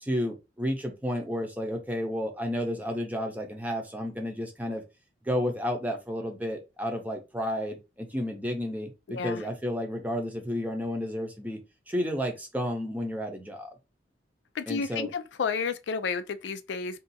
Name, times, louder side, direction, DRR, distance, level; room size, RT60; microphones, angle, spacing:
voice 1, 0.0-4.8 5.2-11.6 11.9-13.7 14.7-15.1, equal, 10° right, 0.7 m, -31 dB
voice 2, 9.1-9.4 14.5-17.0, left 5 dB, 90° left, 0.4 m, -31 dB
2.7 x 2.4 x 4.0 m
head